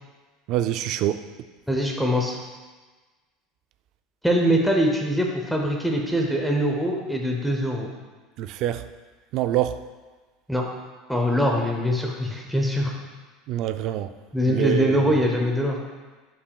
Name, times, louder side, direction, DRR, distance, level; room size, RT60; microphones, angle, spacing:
voice 1, 0.5-1.3 8.4-8.9 9.3-9.8 13.5-14.1 14.5-15.1, right 12 dB, 45° right, 11 dB, 0.3 m, -26 dB
voice 2, 1.7-2.4 4.2-7.9 10.5-10.7 11.1-12.9 14.3-15.8, equal, ahead, 0 dB, 0.6 m, -23 dB
9.4 x 5.9 x 2.3 m, 1.3 s
cardioid pair, 155°, 0 cm